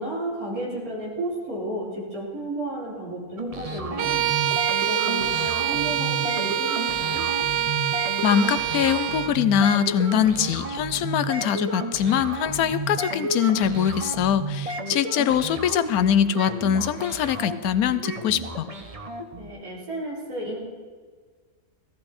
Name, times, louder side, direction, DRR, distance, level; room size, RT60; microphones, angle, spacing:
voice 1, 0.0-4.2 4.8-7.3 19.4-20.6, right 1 dB, 80° right, -5 dB, 4.7 m, -32 dB
sound 1, 3.4-19.5, right 2 dB, 25° right, 1.0 m, -33 dB
Bowed string instrument, 4.0-9.4, right 11 dB, 65° right, 0.8 m, -25 dB
voice 2, 8.2-18.7, left 9 dB, 85° left, 14 dB, 1.2 m, -23 dB
17.0 x 14.5 x 4.3 m, 1.5 s
omnidirectional pair, 1.5 m